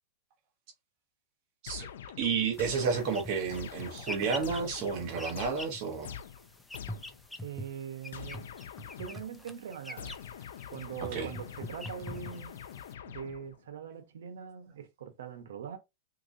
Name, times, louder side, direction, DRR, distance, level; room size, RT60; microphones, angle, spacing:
sound 1, 1.7-7.3 8.1-9.4 10.0-13.7, left 9 dB, 80° left, 0.5 m, -45 dB
voice 1, 2.2-6.1 11.1-11.3, right 5 dB, 45° right, 1.0 m, -31 dB
sound 2, 2.5-12.9, left 1 dB, 5° left, 0.4 m, -45 dB
voice 2, 7.4-8.5 8.9-10.2 10.7-12.6 13.1-15.8, right 8 dB, 85° right, 0.9 m, -42 dB
3.7 x 2.9 x 2.6 m
supercardioid pair, 155°, 0 cm